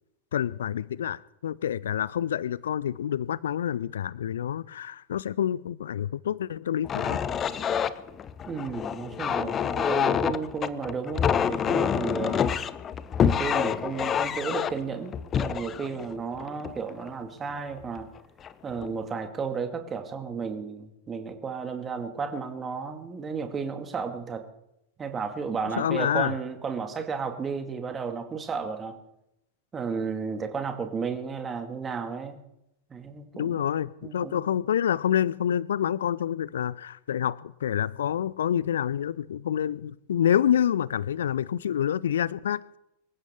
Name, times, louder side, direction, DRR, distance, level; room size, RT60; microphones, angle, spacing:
voice 1, 0.3-7.2 25.8-26.3 33.3-42.6, left 9 dB, 65° left, 22 dB, 0.5 m, -27 dB
sound 1, 6.8-17.1 17.8-18.0 18.4-18.9, left 8 dB, 25° left, 0.8 m, -27 dB
voice 2, 8.5-12.5 13.2-18.1 18.6-24.4 25.0-29.0 29.7-32.4 32.9-33.7 34.0-34.5, right 5 dB, 20° right, 6 dB, 2.1 m, -33 dB
24.5 x 15.5 x 3.7 m, 0.83 s
figure-of-eight pair, 90°, 0 cm